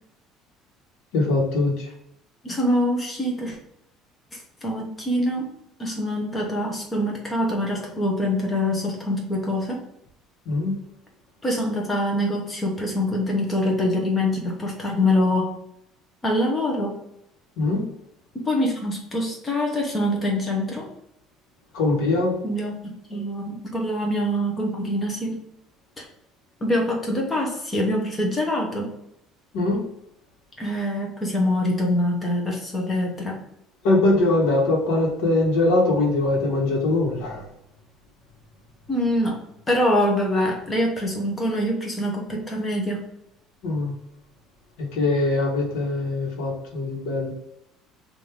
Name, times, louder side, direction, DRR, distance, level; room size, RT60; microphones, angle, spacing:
voice 1, 1.1-1.9 10.5-10.8 17.6-17.8 21.7-22.3 29.5-29.8 33.8-37.4 43.6-43.9 44.8-47.3, left 2 dB, 80° left, -1 dB, 1.3 m, -22 dB
voice 2, 2.4-3.6 4.3-5.5 5.8-9.8 11.4-15.5 16.2-17.0 18.3-20.9 22.4-25.4 26.0-26.1 26.6-28.9 30.6-33.4 38.9-39.4 39.7-43.0, left 1 dB, 15° left, 0 dB, 1.0 m, -24 dB
3.4 x 2.7 x 4.6 m, 0.77 s
cardioid pair, 160°, 0 cm